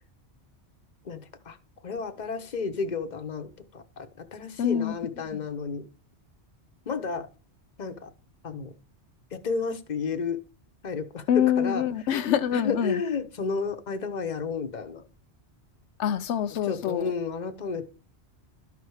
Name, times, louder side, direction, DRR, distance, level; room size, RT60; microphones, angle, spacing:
voice 1, 1.0-1.6 1.8-5.9 6.9-7.3 7.8-8.1 8.4-8.7 9.3-10.4 10.8-11.8 12.5-15.0 16.6-17.8, left 5 dB, 40° left, 1.0 m, -32 dB
voice 2, 4.6-4.9 5.3-5.4 11.3-13.0 16.0-17.1, left 9 dB, 85° left, 0.9 m, -25 dB
12.5 x 4.8 x 4.8 m
omnidirectional pair, 1.1 m